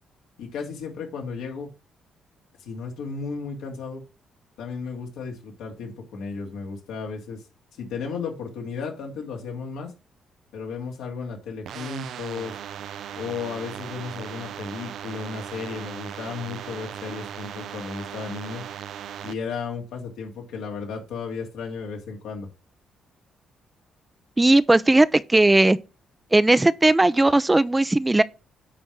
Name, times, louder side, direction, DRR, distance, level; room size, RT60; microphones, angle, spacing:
voice 1, 0.4-1.7 2.6-4.0 4.6-7.4 7.8-9.9 10.5-12.6 13.2-18.6 19.2-22.5, left 5 dB, 90° left, 2.7 m, -34 dB
sound 1, 11.7-19.3, right 10 dB, 75° right, 0.5 m, -37 dB
voice 2, 24.4-25.8 26.3-28.2, right 2 dB, 15° right, 0.4 m, -17 dB
9.5 x 3.6 x 6.0 m
cardioid pair, 90°, 0 cm